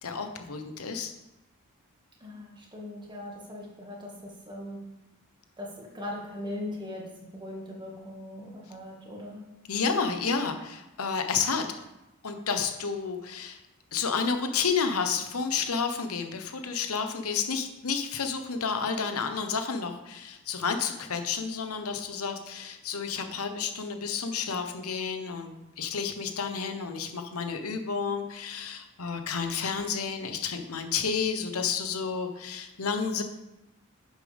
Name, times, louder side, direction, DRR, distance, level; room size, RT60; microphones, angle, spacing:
voice 1, 0.0-1.1 9.7-11.7 12.2-13.6 13.9-25.5 25.8-33.2, left 5 dB, 80° left, 6 dB, 1.0 m, -30 dB
voice 2, 2.2-4.8 5.6-9.5, left 1 dB, 20° right, -2 dB, 1.9 m, -40 dB
10.5 x 7.5 x 3.5 m, 0.95 s
head